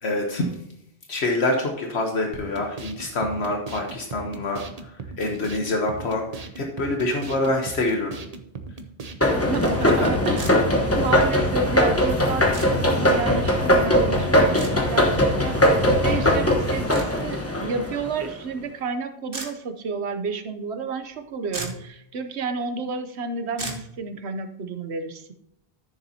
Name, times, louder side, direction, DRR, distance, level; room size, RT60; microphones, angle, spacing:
voice 1, 0.0-0.5 1.1-4.9 5.2-8.2 9.8-10.1, left 2 dB, 75° left, 1 dB, 1.3 m, -26 dB
sound 1, 2.3-9.4, right 4 dB, 40° right, 0.8 m, -38 dB
sound 2, 9.2-18.3, left 1 dB, 15° left, 1.0 m, -20 dB
voice 2, 9.3-15.6 16.0-25.3, right 4 dB, 80° right, 9 dB, 1.1 m, -31 dB
sound 3, 10.4-10.5 12.5-12.7 14.6-14.7 16.9-17.1 19.3-19.5 21.2-21.3 21.5-21.9 23.6-23.8, right 3 dB, 55° right, 1.6 m, -33 dB
13.5 x 7.0 x 2.8 m, 0.76 s
omnidirectional pair, 1.1 m